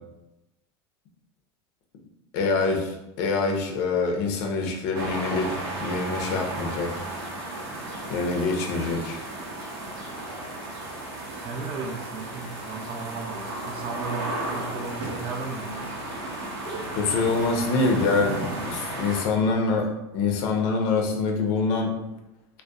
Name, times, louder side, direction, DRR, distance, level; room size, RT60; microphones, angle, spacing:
voice 1, 2.3-5.5 5.8-7.1 8.1-9.2 17.0-19.9 20.1-21.9, left 3 dB, 65° left, 2 dB, 0.5 m, -25 dB
sound 1, 4.9-19.2, right 2 dB, 80° right, 0.7 m, -34 dB
voice 2, 11.4-15.9, right 4 dB, 45° right, 2 dB, 0.5 m, -35 dB
2.6 x 2.1 x 2.2 m, 0.93 s
hypercardioid pair, 95°, 13 cm